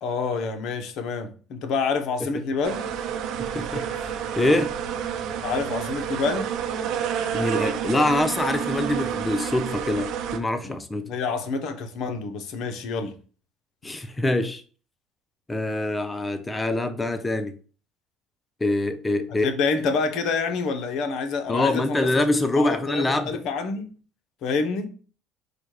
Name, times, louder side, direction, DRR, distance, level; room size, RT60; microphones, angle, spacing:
voice 1, 0.0-2.9 5.4-6.5 10.6-10.8 11.0-13.1 19.4-23.9 24.4-24.9, left 4 dB, 60° left, 0.8 m, -27 dB
Bees in a Russian Olive Tree, 2.6-10.4, right 9 dB, 65° right, 0.6 m, -29 dB
voice 2, 3.4-3.9 4.4-4.7 7.3-11.1 13.8-14.6 15.5-17.6 18.6-19.5 21.5-23.4, left 2 dB, 15° left, 0.5 m, -24 dB
4.9 x 2.3 x 4.7 m
cardioid pair, 115°, 0 cm